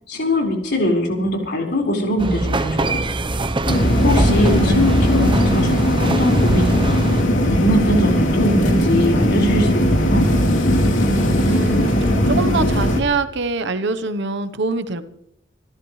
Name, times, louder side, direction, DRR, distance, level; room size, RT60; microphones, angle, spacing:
voice 1, 0.1-3.0 4.0-7.0 7.4-10.4, left 1 dB, 60° left, 0 dB, 4.8 m, -21 dB
sound 1, 2.2-7.2, right 2 dB, 25° right, 0.8 m, -23 dB
sound 2, 3.7-13.0, equal, 85° left, 3.1 m, -18 dB
voice 2, 4.3-4.9 5.2-5.3 11.5-15.0, right 2 dB, 65° right, 11 dB, 1.0 m, -24 dB
27.0 x 13.5 x 3.2 m, 0.79 s
head